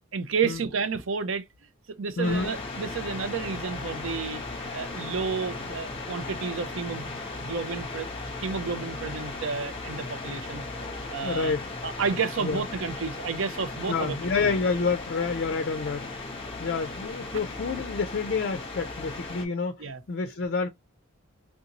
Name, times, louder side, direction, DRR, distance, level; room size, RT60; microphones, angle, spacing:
voice 1, 0.1-1.4 1.9-4.4 4.7-8.1 8.4-10.6 11.1-11.5 11.8-14.5 19.8-20.0, right 5 dB, 65° right, 0.6 m, -31 dB
voice 2, 2.2-2.5 11.2-11.6 12.4-12.6 13.9-20.7, left 4 dB, 50° left, 0.4 m, -29 dB
sound 1, 2.2-19.5, left 3 dB, 25° left, 1.0 m, -37 dB
3.6 x 2.6 x 2.8 m
head